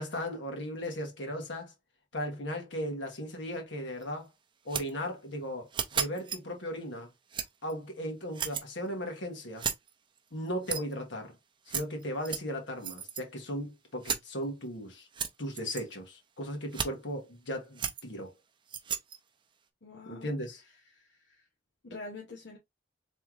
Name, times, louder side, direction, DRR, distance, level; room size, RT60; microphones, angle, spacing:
voice 1, 0.0-1.7 2.1-4.3 4.6-7.1 7.6-9.6 10.3-11.3 11.7-15.1 15.4-18.3 20.1-20.6, equal, 85° left, 1.6 m, -37 dB
sound 1, 4.0-4.1 4.7-4.9 5.7-6.4 7.3-7.7 8.3-8.6 9.6-9.9 10.5-10.9 11.7-12.4 12.8-13.2 14.0-14.2 15.1-15.8 16.7-16.9 17.8-18.0 18.7-19.2, right 7 dB, 25° right, 0.5 m, -33 dB
voice 2, 19.8-20.3 20.6-21.5 21.8-22.6, left 3 dB, 70° left, 1.0 m, -46 dB
3.7 x 3.4 x 3.0 m
head